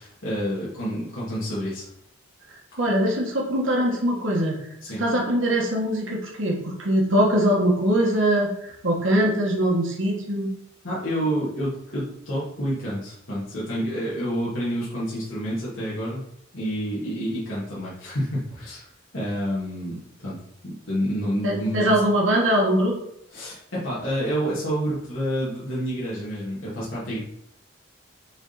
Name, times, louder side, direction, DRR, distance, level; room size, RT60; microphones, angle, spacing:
voice 1, 0.0-1.9 4.8-5.0 10.8-16.3 16.5-18.8 19.1-20.4 20.6-21.9 23.3-27.2, equal, 75° left, -9 dB, 2.1 m, -28 dB
voice 2, 2.8-4.6 5.0-10.5 21.4-22.9, right 1 dB, 70° right, -2 dB, 1.4 m, -22 dB
7.0 x 3.5 x 4.1 m, 0.73 s
head